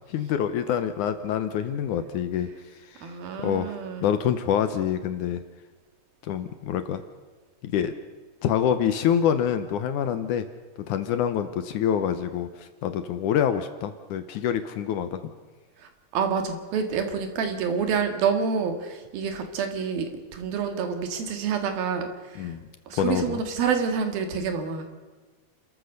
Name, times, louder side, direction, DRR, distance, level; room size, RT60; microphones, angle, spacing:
voice 1, 0.1-2.5 2.9-3.1 3.4-3.7 4.0-5.4 6.2-7.0 7.6-7.9 8.4-10.4 10.9-12.5 12.8-15.2 22.4-22.7 23.0-23.4, left 9 dB, 70° left, 10 dB, 2.1 m, -26 dB
voice 2, 3.0-4.1 16.1-22.5 22.9-24.9, right 6 dB, 80° right, 6 dB, 3.7 m, -28 dB
29.5 x 14.0 x 6.6 m, 1.3 s
omnidirectional pair, 4.2 m